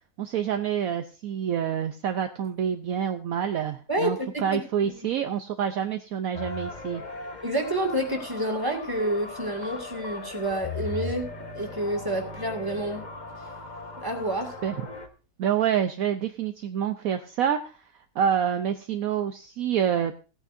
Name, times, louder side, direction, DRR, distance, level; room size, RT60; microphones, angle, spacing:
voice 1, 0.2-7.0 14.6-14.9 15.4-17.8 18.1-20.1, right 8 dB, 65° right, 7 dB, 1.1 m, -27 dB
voice 2, 3.9-4.3 4.5-4.9 7.4-11.3 11.5-13.0 14.0-14.5, right 1 dB, 15° right, 1 dB, 2.2 m, -29 dB
sound 1, 6.3-15.1, left 2 dB, 30° left, 1.1 m, -38 dB
17.5 x 9.0 x 2.6 m, 0.34 s
omnidirectional pair, 1.7 m